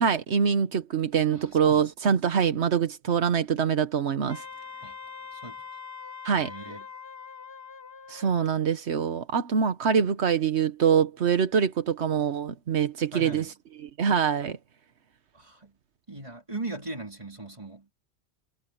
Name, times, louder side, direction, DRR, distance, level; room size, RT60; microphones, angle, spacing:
voice 1, 0.0-4.4 6.2-6.5 8.1-13.4 13.8-14.6, right 7 dB, 80° right, 1.3 m, -24 dB
voice 2, 1.3-1.9 4.8-5.0 5.3-5.7 6.3-6.9 13.1-13.5 15.3-15.7 16.1-17.9, right 2 dB, 30° right, 3.8 m, -39 dB
Wind instrument woodwind instrument, 4.3-8.5, left 6 dB, 70° left, 7.1 m, -43 dB
omnidirectional pair, 1.1 m